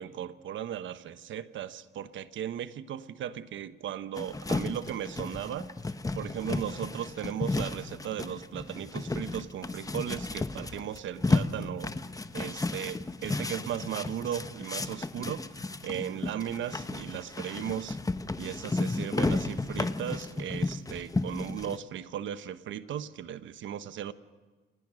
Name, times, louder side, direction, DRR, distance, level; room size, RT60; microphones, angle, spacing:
voice 1, 0.0-5.7 6.1-11.9 12.3-15.4 15.8-18.0 18.4-24.1, right 10 dB, 75° right, 13 dB, 1.2 m, -36 dB
sound 1, 4.2-21.8, left 3 dB, 15° left, 1.1 m, -33 dB
28.5 x 20.0 x 6.4 m, 1.3 s
cardioid pair, 90°, 20 cm